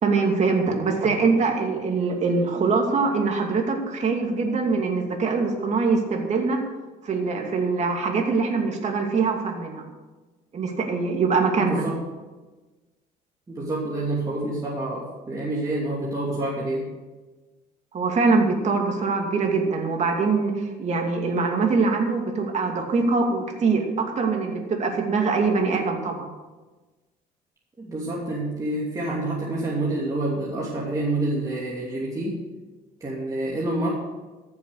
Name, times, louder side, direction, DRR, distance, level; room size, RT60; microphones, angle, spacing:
voice 1, 0.0-6.6 7.0-9.8 10.5-11.8 17.9-26.3, right 4 dB, 45° right, 2 dB, 2.6 m, -23 dB
voice 2, 11.6-11.9 13.5-16.8 27.8-32.3 33.0-33.9, right 2 dB, 20° right, -6 dB, 2.8 m, -28 dB
14.5 x 7.3 x 6.6 m, 1.2 s
cardioid pair, 110°, 17 cm